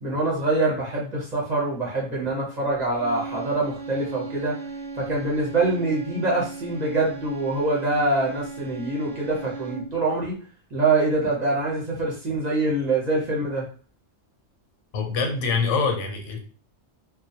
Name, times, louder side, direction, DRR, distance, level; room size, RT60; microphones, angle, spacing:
voice 1, 0.0-4.5 5.0-10.4 10.7-13.7, right 2 dB, 45° right, -4 dB, 0.7 m, -24 dB
sound 1, 2.9-10.1, right 4 dB, 80° right, 0.9 m, -37 dB
voice 2, 14.9-16.4, left 4 dB, 80° left, 3 dB, 0.9 m, -24 dB
2.2 x 2.1 x 2.6 m, 0.39 s
omnidirectional pair, 1.2 m